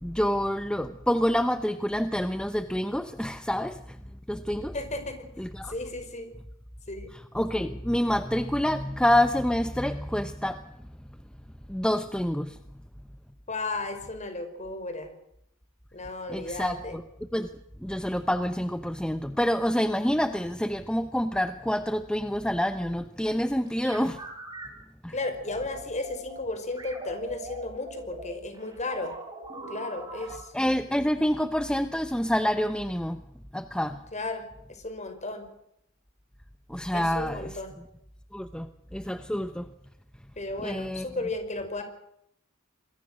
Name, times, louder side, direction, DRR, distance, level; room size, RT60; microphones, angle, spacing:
voice 1, 0.0-4.0 4.3-4.7 5.4-5.7 7.3-10.6 11.7-12.6 16.3-17.0 17.3-17.5 17.8-24.2 25.0-25.1 30.5-33.2 33.5-34.0 36.7-37.5 38.3-39.7 40.6-41.1, equal, 5° left, 10 dB, 0.9 m, -27 dB
voice 2, 4.7-5.3 5.6-6.3 6.9-7.1 13.5-15.1 15.9-17.0 25.1-29.1 29.7-30.5 34.1-34.4 34.7-35.5 36.9-37.7 40.4-41.8, left 2 dB, 35° left, 7 dB, 5.4 m, -34 dB
sound 1, 23.7-24.7 25.2-26.4 26.8-30.4, right 2 dB, 20° right, 7.9 m, -42 dB
27.5 x 22.0 x 6.4 m, 0.76 s
head